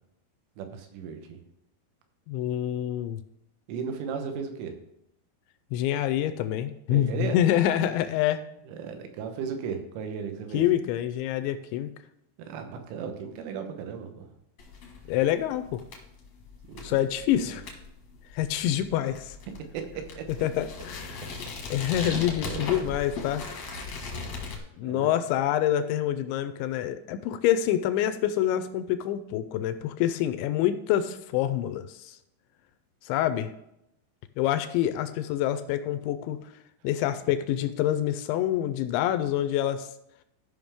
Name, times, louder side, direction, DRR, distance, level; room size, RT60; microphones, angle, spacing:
voice 1, 0.6-1.4 3.7-4.7 6.9-7.4 8.7-10.6 12.5-14.3 16.6-17.0 17.4-17.5 20.2-20.3 21.8-22.9 24.8-25.2, right 6 dB, 85° right, 5 dB, 3.6 m, -36 dB
voice 2, 2.3-3.2 5.7-8.4 10.5-11.9 15.1-15.8 16.8-17.6 18.3-19.4 20.4-21.4 21.7-23.4 24.8-32.2 33.0-33.5 34.4-36.4 36.8-39.9, left 11 dB, 85° left, 10 dB, 2.7 m, -26 dB
sound 1, 14.6-24.6, left 4 dB, 65° left, 1.6 m, -39 dB
14.5 x 5.6 x 3.5 m, 0.80 s
omnidirectional pair, 5.5 m